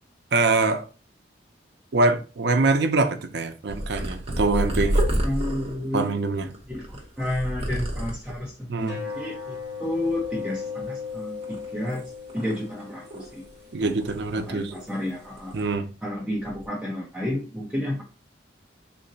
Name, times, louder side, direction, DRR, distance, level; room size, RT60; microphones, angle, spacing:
voice 1, 0.3-0.9 1.9-5.0 5.9-6.5 8.7-9.0 13.7-14.7 15.5-15.9, right 3 dB, 60° right, 0.5 m, -24 dB
Purr, 3.7-8.5 9.1-9.6 9.8-11.0 11.4-13.5 13.8-15.1 15.4-15.7 16.3-16.6, right 1 dB, 30° right, 0.8 m, -30 dB
voice 2, 5.2-12.0 12.3-13.4 13.8-14.0 14.4-15.6 16.0-18.0, left 1 dB, 5° right, 0.5 m, -31 dB
sound 1, 8.8-15.7, left 6 dB, 65° left, 1.4 m, -38 dB
3.7 x 2.1 x 3.9 m
head